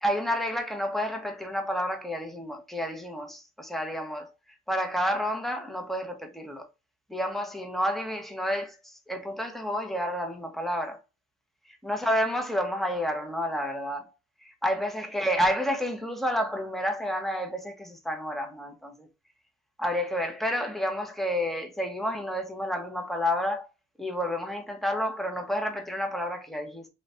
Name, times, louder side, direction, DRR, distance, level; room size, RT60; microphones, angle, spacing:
voice 1, 0.0-4.3 4.7-6.7 7.1-11.0 11.8-14.1 14.4-19.1 19.8-23.7 24.0-26.9, equal, ahead, 0.9 m, -30 dB
3.2 x 3.1 x 2.5 m
cardioid pair, 90°, 30 cm